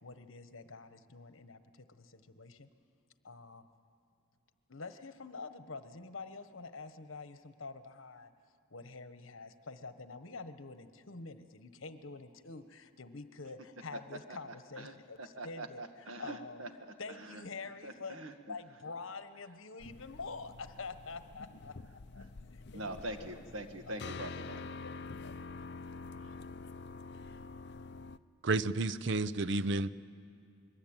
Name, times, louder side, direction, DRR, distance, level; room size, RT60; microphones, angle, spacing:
voice 1, 0.0-2.7 3.2-3.6 4.7-8.3 8.7-16.6 17.0-18.2 18.5-21.7 22.1-23.3 23.9-24.0 24.8-25.3, left 4 dB, 75° left, 10 dB, 1.2 m, -47 dB
voice 2, 14.8-16.7 17.1-17.4 17.8-18.5 22.7-24.6, right 1 dB, 80° right, 6 dB, 1.8 m, -43 dB
sound 1, 19.8-28.2, left 4 dB, 55° left, 0.6 m, -47 dB
voice 3, 28.4-29.9, right 3 dB, 60° right, 15 dB, 0.6 m, -31 dB
23.0 x 22.0 x 8.9 m, 2.6 s
head